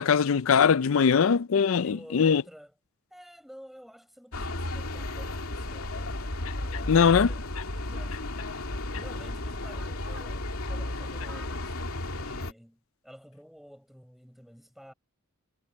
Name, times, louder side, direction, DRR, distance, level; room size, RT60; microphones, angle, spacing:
voice 1, 0.0-2.4 6.9-7.3, left 6 dB, 65° left, 0.4 m, -21 dB
voice 2, 1.8-2.7 3.1-6.2 6.6-7.5 7.9-8.2 8.9-14.9, equal, ahead, 5.6 m, -51 dB
sound 1, 4.3-12.5, left 2 dB, 85° left, 2.6 m, -34 dB
head